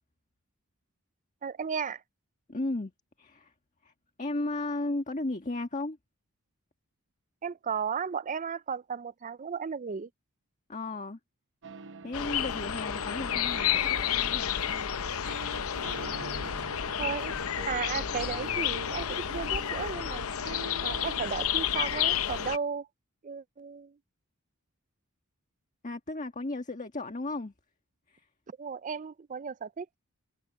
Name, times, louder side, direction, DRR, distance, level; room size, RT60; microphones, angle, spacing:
voice 1, 1.4-2.0 7.4-10.1 17.0-17.3 17.7-20.3 20.8-22.9 23.2-24.0 28.5-29.9, right 6 dB, 35° right, 0.5 m, -35 dB
voice 2, 2.5-2.9 3.2-3.5 3.8-6.0 10.7-11.2 12.0-15.0 25.8-27.5 28.1-28.3, left 2 dB, 35° left, 1.6 m, -35 dB
sound 1, 11.6-21.5, right 3 dB, 60° right, 0.9 m, -46 dB
sound 2, 12.1-22.6, left 9 dB, 70° left, 0.7 m, -31 dB
head